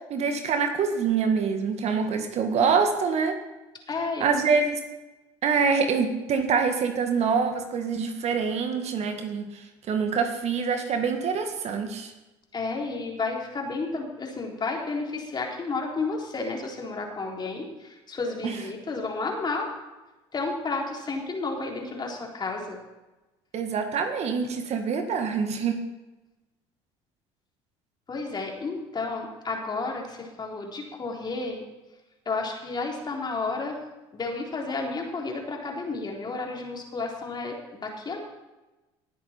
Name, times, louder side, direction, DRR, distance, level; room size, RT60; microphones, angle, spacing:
voice 1, 0.0-3.3 4.2-4.8 5.4-12.1 18.4-18.5 23.5-25.8, right 5 dB, 50° right, 6 dB, 1.7 m, -25 dB
voice 2, 3.9-4.4 12.5-19.7 20.3-22.8 28.1-31.6 32.2-33.8 34.1-38.3, left 3 dB, 30° left, 0 dB, 3.5 m, -32 dB
19.0 x 8.2 x 4.4 m, 1.1 s
hypercardioid pair, 75°, 14 cm